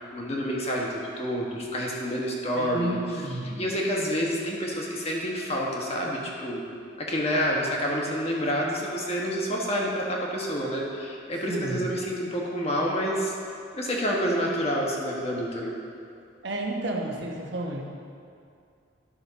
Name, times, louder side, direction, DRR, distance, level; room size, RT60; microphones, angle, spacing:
voice 1, 0.1-3.3 3.6-6.6 7.0-13.3 13.7-15.7, equal, 30° left, -2 dB, 1.3 m, -28 dB
voice 2, 2.6-3.6 11.5-11.8 16.4-17.8, right 1 dB, 60° right, 0 dB, 1.1 m, -31 dB
11.5 x 6.2 x 4.1 m, 2.4 s
head